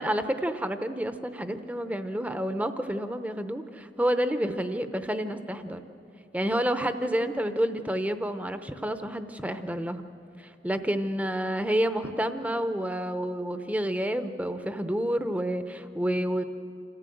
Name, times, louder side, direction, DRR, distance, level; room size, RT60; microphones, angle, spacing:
voice 1, 0.0-5.8 6.3-10.0 10.4-16.4, equal, 10° right, 9 dB, 0.7 m, -29 dB
27.5 x 14.5 x 7.8 m, 2.6 s
head